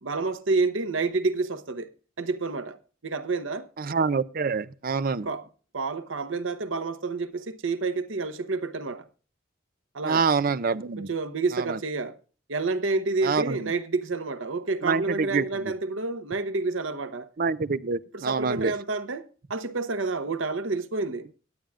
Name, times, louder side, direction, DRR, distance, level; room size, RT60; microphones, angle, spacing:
voice 1, 0.0-1.9 2.2-2.8 3.0-3.7 5.2-5.4 5.7-9.1 9.9-10.2 11.0-12.1 12.5-17.3 18.1-21.3, right 3 dB, 85° right, 1.0 m, -29 dB
voice 2, 3.8-5.3 10.0-11.1 11.5-11.8 13.2-13.7 14.8-15.7 17.4-18.7, right 5 dB, 45° right, 0.5 m, -26 dB
18.0 x 8.9 x 2.4 m
head